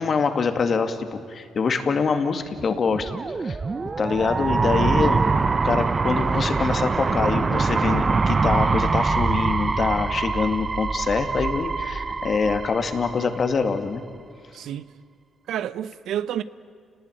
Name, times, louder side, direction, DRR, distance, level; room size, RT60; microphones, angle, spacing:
voice 1, 0.0-3.1 3.4-3.6 4.0-5.2 5.6-14.0, left 5 dB, 45° left, 7 dB, 2.2 m, -24 dB
sound 1, 2.8-13.7, right 4 dB, 30° right, 0.8 m, -24 dB
voice 2, 14.5-14.9 15.5-16.4, right 10 dB, 80° right, 15 dB, 0.8 m, -29 dB
29.5 x 19.0 x 9.2 m, 2.1 s
cardioid pair, 90°, 0 cm